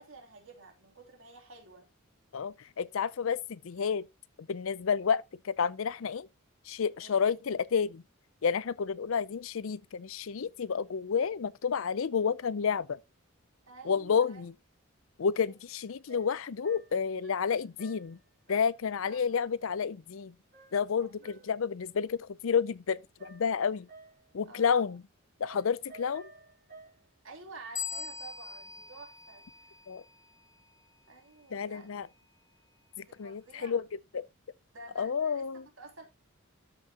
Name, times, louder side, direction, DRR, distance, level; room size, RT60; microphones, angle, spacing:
voice 1, 0.0-1.9 7.0-7.2 13.7-14.5 15.5-15.6 19.1-19.6 21.0-21.4 24.4-24.9 27.2-29.7 31.1-31.9 33.1-33.9 34.7-35.4 35.8-36.0, right 3 dB, 65° right, 3.0 m, -50 dB
voice 2, 2.3-4.0 4.4-6.3 6.7-8.0 8.4-13.0 13.9-14.5 15.2-18.2 18.5-20.3 20.7-23.9 24.3-25.0 25.4-26.3 29.9-30.0 31.5-32.1 33.0-33.8 34.1-34.3 35.0-35.7, left 6 dB, 70° left, 0.5 m, -30 dB
sound 1, 15.7-15.8 16.1-18.2 18.5-18.8 19.1-19.5 20.5-21.6 23.2-24.4 25.4-27.1 27.9-28.0, right 3 dB, 50° right, 4.1 m, -54 dB
sound 2, 27.8-30.2, left 6 dB, 15° left, 0.5 m, -41 dB
13.0 x 6.2 x 2.9 m
head